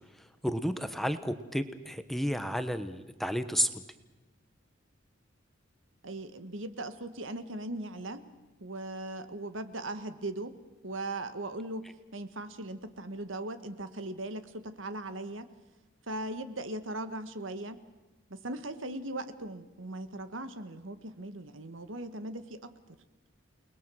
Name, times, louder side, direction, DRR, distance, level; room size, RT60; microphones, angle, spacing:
voice 1, 0.4-3.7, equal, ahead, 10 dB, 1.1 m, -31 dB
voice 2, 6.0-8.2 8.6-10.5 10.8-11.8 12.1-15.5 16.1-17.8 18.3-23.0, right 2 dB, 75° right, 10 dB, 1.6 m, -39 dB
30.0 x 20.5 x 6.4 m, 1.1 s
head